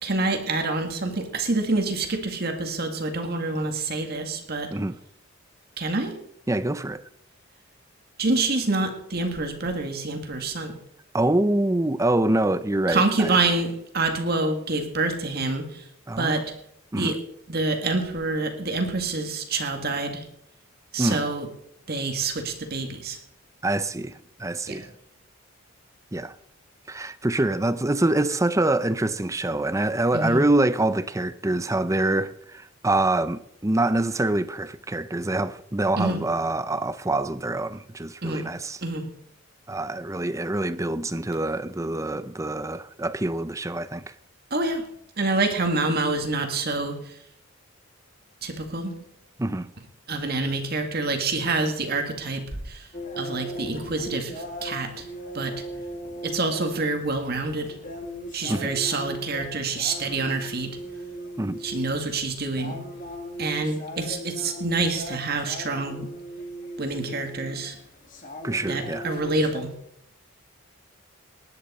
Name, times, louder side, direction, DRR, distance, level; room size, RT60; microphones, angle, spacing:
voice 1, 0.0-4.7 5.8-6.2 8.2-10.7 12.9-15.8 16.2-16.6 17.0-17.2 17.5-20.3 20.9-21.5 21.9-23.2 24.7-24.8 30.1-30.4 36.0-36.2 38.2-38.5 38.8-39.1 44.5-44.9 45.2-47.1 48.4-49.0 50.1-52.9 53.2-55.1 55.3-55.6 56.2-57.8 58.3-60.8 61.6-62.8 63.4-66.1 66.8-67.8 68.7-69.7, right 3 dB, 45° right, 1.9 m, -27 dB
voice 2, 6.5-7.0 11.1-13.4 16.1-16.3 16.9-17.1 21.0-21.2 23.6-24.9 26.1-26.3 26.9-38.8 39.7-44.0 49.4-49.7 58.5-58.7 61.4-61.6 68.4-69.1, right 2 dB, 15° right, 0.5 m, -25 dB
sound 1, 52.9-69.6, equal, 40° left, 2.3 m, -38 dB
20.0 x 10.5 x 4.3 m
head